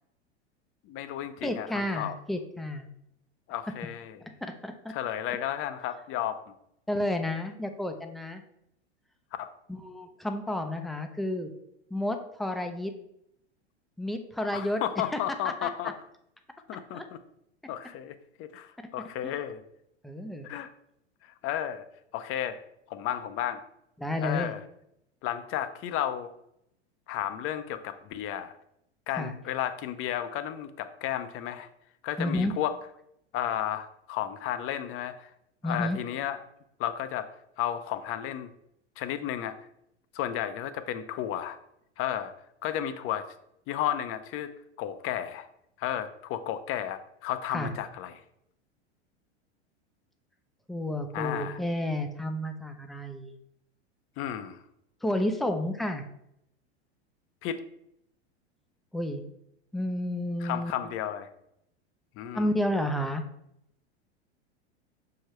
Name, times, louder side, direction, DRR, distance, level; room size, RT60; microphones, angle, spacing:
voice 1, 0.9-2.1 3.5-4.2 4.9-6.4 9.4-9.5 14.5-15.9 16.7-17.0 17.7-19.6 20.4-20.7 21.4-21.9 22.1-22.6 22.9-23.6 24.2-24.6 25.2-26.3 27.1-28.5 29.1-31.7 32.0-32.8 33.3-35.3 35.6-36.4 36.8-37.3 37.6-38.5 39.0-39.5 40.1-41.6 42.0-42.3 42.6-43.2 43.7-44.5 44.8-45.5 45.8-48.2 51.1-51.6 54.2-54.6 57.4-57.6 60.4-61.3 62.2-62.5, left 11 dB, 40° left, 11 dB, 0.6 m, -33 dB
voice 2, 1.4-2.9 4.4-4.9 6.9-8.4 9.7-11.5 11.9-12.9 14.0-14.8 15.1-15.2 15.4-15.7 16.9-17.1 19.2-19.3 20.0-20.5 24.0-24.5 29.2-29.3 32.2-32.5 35.6-36.0 47.5-47.7 50.7-53.3 55.0-56.0 58.9-59.2 59.7-60.7 62.3-63.2, left 1 dB, ahead, 5 dB, 0.5 m, -31 dB
6.3 x 4.8 x 3.1 m, 0.76 s
hypercardioid pair, 100°, 34 cm